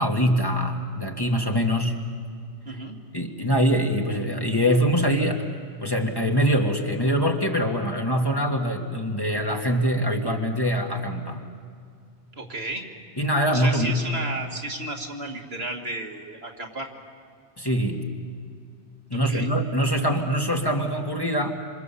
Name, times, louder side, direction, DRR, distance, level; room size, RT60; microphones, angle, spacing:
voice 1, 0.0-2.0 3.1-11.4 13.2-14.1 17.6-18.0 19.1-21.5, equal, 20° left, 1 dB, 1.7 m, -24 dB
voice 2, 2.7-3.0 12.4-12.8 13.5-16.9 19.1-19.5, right 2 dB, 60° right, 1 dB, 2.6 m, -33 dB
27.0 x 26.0 x 7.0 m, 2.2 s
omnidirectional pair, 1.2 m